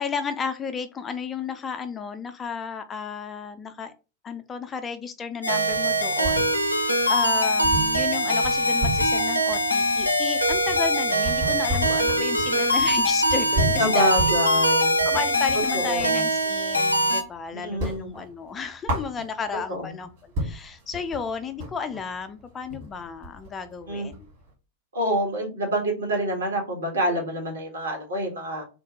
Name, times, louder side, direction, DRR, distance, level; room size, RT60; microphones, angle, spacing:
voice 1, 0.0-3.9 4.2-14.4 15.1-20.1 20.4-24.1, left 5 dB, 20° left, 9 dB, 0.4 m, -33 dB
sound 1, 5.4-17.2, equal, 85° left, 0.4 m, -23 dB
sound 2, 5.7-6.9 7.2-7.3 7.6-16.2 16.6-17.4 17.6-19.6 20.1-20.2 20.3-24.5, equal, 50° right, 1.4 m, -32 dB
voice 2, 13.8-15.0 15.7-16.3 17.5-18.1 19.7-19.9 23.9-24.1 24.9-28.6, equal, 70° right, 0 dB, 1.3 m, -27 dB
3.1 x 2.1 x 2.8 m, 0.32 s
figure-of-eight pair, 90°, 0 cm